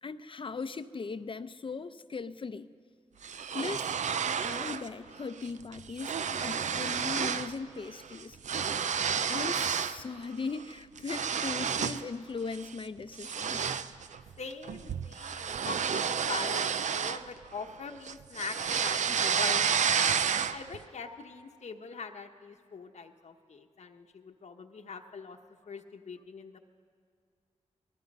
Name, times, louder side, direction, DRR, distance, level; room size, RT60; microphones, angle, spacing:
voice 1, 0.0-2.7 3.5-3.9 4.4-8.4 9.3-13.7, left 4 dB, 45° left, 12 dB, 0.6 m, -39 dB
sound 1, 3.2-4.9 5.2-5.5 5.7-7.5 7.8-10.0 10.4-12.1 12.5-12.7 13.2-17.7 18.1-20.8, right 7 dB, 80° right, 0.5 m, -31 dB
voice 2, 8.5-8.9 14.4-19.7 20.3-25.4 25.7-26.6, left 5 dB, 65° left, 4 dB, 1.0 m, -42 dB
28.0 x 20.0 x 5.4 m, 2.1 s
wide cardioid pair, 95°, 12 cm